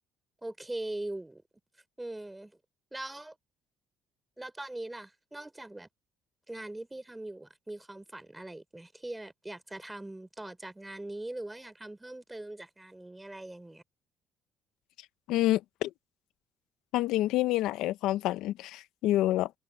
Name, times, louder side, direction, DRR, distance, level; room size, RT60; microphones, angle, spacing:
voice 1, 0.4-1.4 2.0-2.6 2.9-3.4 4.4-5.9 6.5-13.8, right 1 dB, 10° right, 3.8 m, -41 dB
voice 2, 15.3-15.9 16.9-19.5, left 15 dB, 85° left, 0.8 m, -28 dB
cardioid pair, 130°, 0 cm